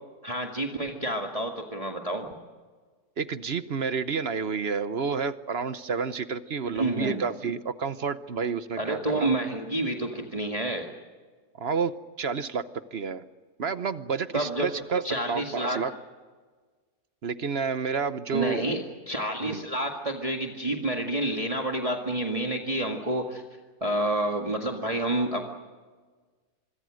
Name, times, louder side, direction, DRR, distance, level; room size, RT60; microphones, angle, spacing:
voice 1, 0.2-2.3 6.7-7.2 8.8-10.9 14.3-14.7 15.0-15.8 18.3-23.4 23.8-25.4, right 1 dB, 20° right, 2 dB, 2.0 m, -29 dB
voice 2, 3.2-9.3 11.6-11.9 12.2-12.6 12.9-13.2 13.6-15.0 15.3-15.9 17.2-18.8 19.4-19.6, right 5 dB, 45° right, 12 dB, 1.0 m, -30 dB
26.0 x 23.5 x 6.4 m, 1.4 s
omnidirectional pair, 1.7 m